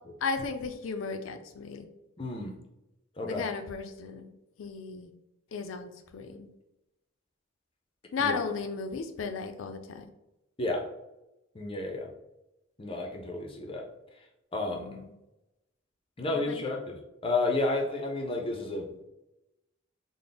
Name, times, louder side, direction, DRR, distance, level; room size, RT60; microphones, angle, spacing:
voice 1, 0.2-1.9 3.2-4.3 4.6-5.1 5.5-6.5 8.1-10.1 14.7-15.1 16.3-16.7, left 4 dB, 85° left, 7 dB, 0.4 m, -35 dB
voice 2, 2.2-2.5 3.2-3.5 8.2-8.3 10.6-10.8 11.5-12.1 12.8-13.9 14.5-15.0 16.2-17.0 17.2-19.0, left 2 dB, 25° left, 1 dB, 0.5 m, -31 dB
3.4 x 2.0 x 3.9 m, 0.91 s
head